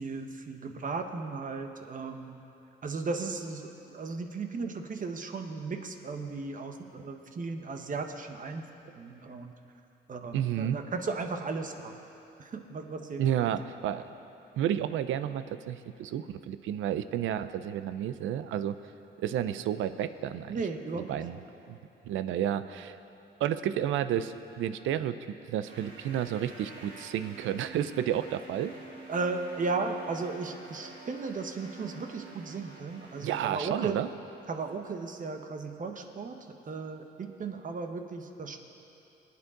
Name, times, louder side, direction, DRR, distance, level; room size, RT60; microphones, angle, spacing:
voice 1, 0.0-2.4 2.8-8.7 9.0-9.5 10.1-11.9 12.5-13.3 20.5-21.2 29.1-34.0 34.5-36.4 36.7-38.6, right 4 dB, 40° right, 5 dB, 1.2 m, -35 dB
voice 2, 10.3-10.8 13.2-14.0 14.5-18.8 19.2-20.6 21.0-21.4 21.7-21.8 22.1-23.0 23.4-28.8 33.2-34.1, right 10 dB, 80° right, 12 dB, 0.6 m, -31 dB
sound 1, 25.6-33.4, right 3 dB, 60° right, 3.2 m, -48 dB
22.5 x 8.6 x 3.8 m, 2.9 s
cardioid pair, 90°, 20 cm